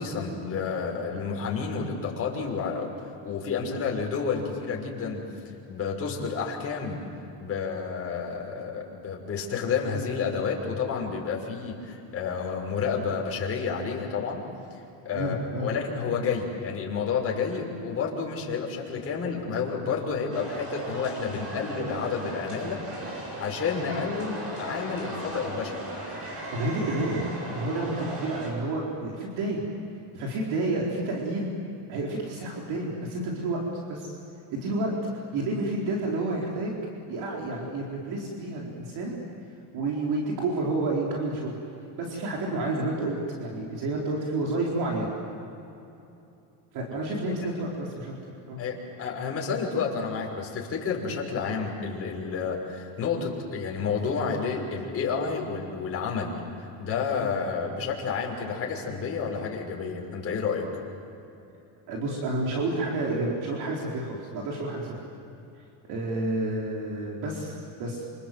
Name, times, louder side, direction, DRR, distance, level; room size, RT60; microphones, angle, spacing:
voice 1, 0.0-2.9 3.2-5.3 5.7-7.0 7.4-14.4 14.7-22.8 23.4-25.8 48.6-56.4 56.8-60.7, left 5 dB, 30° left, -1 dB, 6.0 m, -30 dB
voice 2, 15.1-15.7 26.5-29.6 30.1-31.6 31.9-33.6 33.9-34.1 34.5-34.9 35.3-36.8 37.1-39.1 39.7-41.6 42.0-45.1 46.7-48.1 48.5-48.6 61.9-65.0 65.9-68.1, right 2 dB, 60° right, -2 dB, 4.7 m, -30 dB
sound 1, 20.3-28.5, right 1 dB, 30° right, 7.9 m, -37 dB
27.5 x 27.5 x 7.8 m, 2.9 s
cardioid pair, 145°, 44 cm